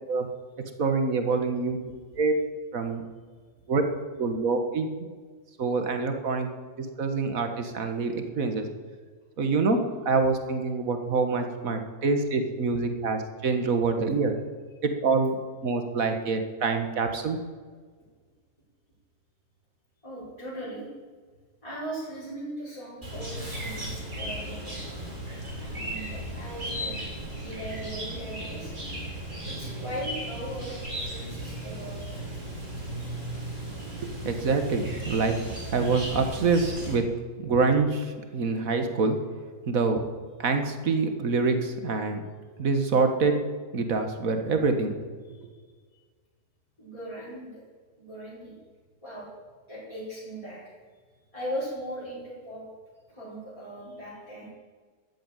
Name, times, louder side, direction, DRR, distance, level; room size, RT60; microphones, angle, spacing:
voice 1, 0.8-1.8 2.2-2.3 2.7-3.0 3.7-3.8 4.2-4.9 5.6-6.5 6.8-8.7 9.4-9.8 10.1-14.3 14.8-15.4 15.6-17.4 34.0-35.3 35.7-37.1 37.4-39.2 39.6-40.0 40.4-42.2 42.6-43.3 43.7-45.0, right 4 dB, 65° right, 6 dB, 2.0 m, -26 dB
voice 2, 20.0-20.8 21.6-24.8 25.6-27.0 27.4-28.7 29.4-32.0 45.2-45.4 46.8-47.6 48.0-48.5 49.0-49.3 49.7-50.6 51.3-52.6 53.1-54.5, right 1 dB, 20° left, -10 dB, 4.8 m, -38 dB
Chirp tweet, 23.0-36.9, right 1 dB, 30° right, 3.8 m, -36 dB
14.0 x 8.7 x 9.1 m, 1.5 s
omnidirectional pair, 1.6 m